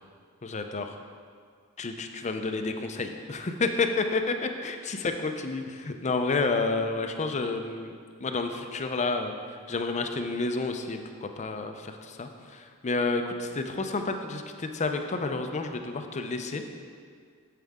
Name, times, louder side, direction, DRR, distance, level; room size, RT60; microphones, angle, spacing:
voice 1, 0.4-0.9 1.8-4.3 4.6-16.8, left 3 dB, 30° left, 6 dB, 0.5 m, -30 dB
9.1 x 7.5 x 3.6 m, 2.1 s
head